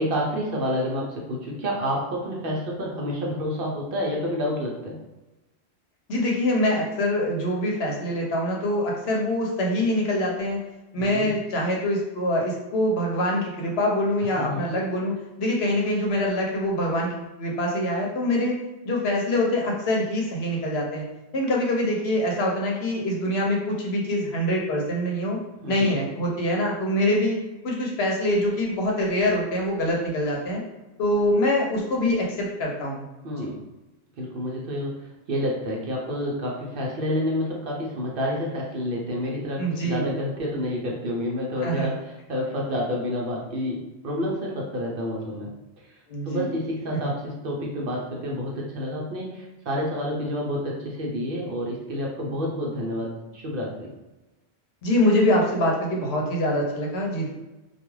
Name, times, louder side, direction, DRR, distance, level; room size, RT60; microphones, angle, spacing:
voice 1, 0.0-5.0 11.0-11.3 14.3-14.6 25.6-26.0 33.2-33.6 34.2-45.5 46.2-53.9, equal, 60° right, -2 dB, 0.8 m, -29 dB
voice 2, 6.1-10.6 10.9-18.6 18.8-21.1 21.3-25.4 25.7-27.4 27.6-30.6 31.0-33.0 33.4-33.5 39.6-40.0 41.6-41.9 46.1-46.5 46.9-47.0 54.8-57.3, left 1 dB, 70° left, -1 dB, 0.9 m, -24 dB
2.3 x 2.3 x 3.0 m, 1.1 s
omnidirectional pair, 1.1 m